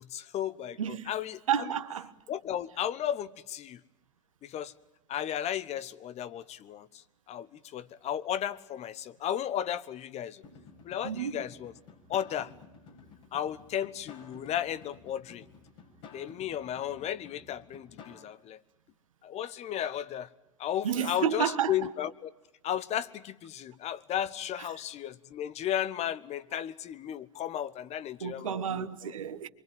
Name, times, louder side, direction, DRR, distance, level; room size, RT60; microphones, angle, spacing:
voice 1, 0.0-1.7 2.3-3.8 4.4-4.7 5.1-7.0 7.3-10.4 10.8-11.7 12.1-12.5 13.3-15.4 16.1-18.6 19.2-20.3 20.6-22.3 22.6-28.9, left 10 dB, 40° left, 1.2 m, -34 dB
voice 2, 0.8-1.1 1.5-2.1 11.0-11.4 20.8-21.9 26.5-26.6 28.2-29.5, right 9 dB, 75° right, 1.4 m, -31 dB
sound 1, 10.4-18.2, left 5 dB, 65° left, 6.5 m, -52 dB
26.0 x 23.5 x 9.1 m
figure-of-eight pair, 75°, 17 cm